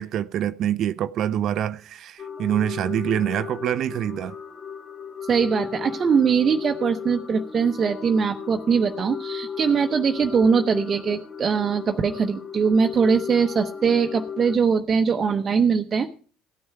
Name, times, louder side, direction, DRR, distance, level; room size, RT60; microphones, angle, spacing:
voice 1, 0.0-4.3, right 10 dB, 60° right, 0.5 m, -25 dB
sound 1, 2.2-14.6, left 6 dB, 30° left, 1.2 m, -36 dB
voice 2, 5.2-16.1, right 6 dB, 40° right, 0.9 m, -21 dB
16.5 x 9.5 x 4.7 m
hypercardioid pair, 60°, 0 cm